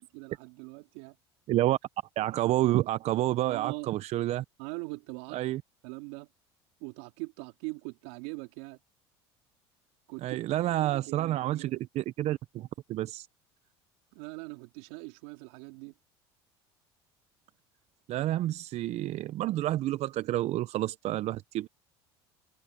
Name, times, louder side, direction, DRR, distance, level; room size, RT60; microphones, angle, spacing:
voice 1, 0.1-1.2 3.4-3.9 4.6-5.6 5.8-6.3 6.8-8.8 10.1-11.8 14.1-16.0, right 28 dB, 75° right, 3.5 m, -42 dB
voice 2, 1.5-1.8 2.2-4.4 5.3-5.6 10.2-13.3 18.1-21.7, right 14 dB, 55° right, 0.7 m, -29 dB
hypercardioid pair, 80°, 13 cm